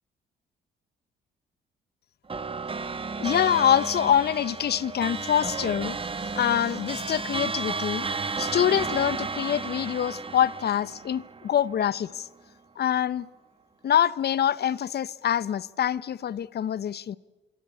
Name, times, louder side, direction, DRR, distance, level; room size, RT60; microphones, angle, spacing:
sound 1, 2.3-11.9, right 4 dB, 25° right, 1.5 m, -33 dB
voice 1, 3.2-8.1 8.4-12.3 12.8-13.3 13.8-17.2, left 10 dB, 55° left, 0.8 m, -25 dB
25.5 x 24.0 x 8.4 m
cardioid pair, 90°, 20 cm